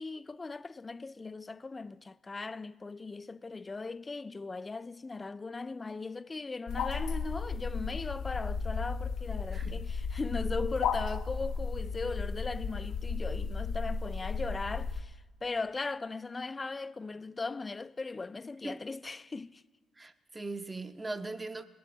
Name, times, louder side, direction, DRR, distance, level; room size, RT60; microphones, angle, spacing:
voice 1, 0.0-19.6, left 3 dB, 30° left, 0.4 m, -38 dB
sound 1, 6.7-15.0, left 5 dB, 75° left, 0.7 m, -34 dB
voice 2, 9.5-9.8 18.6-18.8 20.0-21.6, right 2 dB, 20° right, 0.8 m, -40 dB
20.0 x 10.5 x 3.9 m
hypercardioid pair, 55°, 0 cm